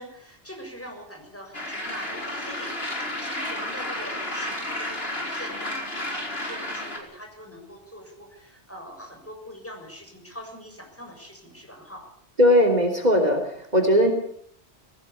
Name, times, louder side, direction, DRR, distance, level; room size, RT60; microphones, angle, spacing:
voice 1, 0.0-12.1 13.8-14.1, equal, 10° left, 2 dB, 7.1 m, -43 dB
sound 1, 1.5-7.0, left 1 dB, 60° left, 5.0 m, -32 dB
voice 2, 12.4-14.1, equal, 40° right, 5 dB, 3.2 m, -19 dB
21.5 x 17.0 x 8.5 m, 0.64 s
omnidirectional pair, 1.1 m